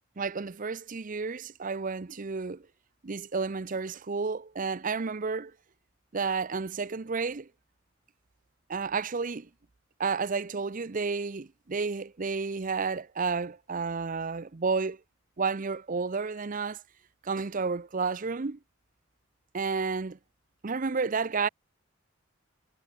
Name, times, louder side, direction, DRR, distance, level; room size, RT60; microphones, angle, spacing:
voice 1, 0.2-2.7 3.0-5.5 6.1-7.5 8.7-9.5 10.0-15.0 15.4-16.8 17.2-18.6 19.5-20.2 20.6-21.5, right 4 dB, 40° right, 0.6 m, -31 dB
head